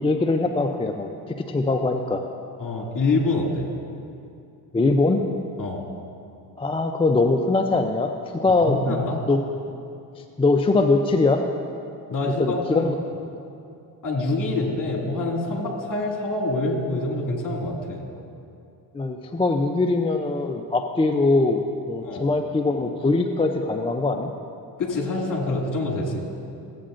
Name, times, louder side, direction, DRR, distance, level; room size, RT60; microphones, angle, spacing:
voice 1, 0.0-2.2 4.7-5.2 6.6-8.9 9.3-9.4 10.2-11.4 12.2-13.0 18.9-24.3, left 3 dB, 15° left, 5 dB, 0.4 m, -22 dB
voice 2, 2.6-3.7 5.6-5.8 8.6-9.2 12.1-12.9 14.0-18.0 22.0-22.2 24.8-26.2, left 2 dB, 45° left, -1 dB, 2.3 m, -26 dB
15.5 x 8.4 x 2.5 m, 2.5 s
supercardioid pair, 75°, 45 cm